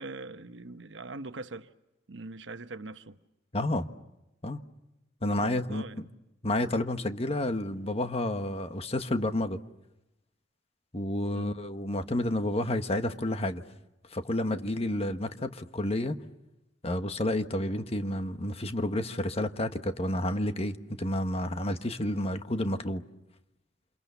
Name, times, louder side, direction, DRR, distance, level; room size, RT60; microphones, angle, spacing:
voice 1, 0.0-1.7 2.1-3.2 5.2-6.1 11.3-11.5, right 3 dB, 85° right, 1.0 m, -42 dB
voice 2, 3.5-3.9 4.4-4.6 5.2-6.1 6.4-9.6 10.9-13.6 14.1-16.2 16.8-23.0, left 1 dB, 35° left, 1.3 m, -30 dB
29.0 x 27.5 x 7.0 m
head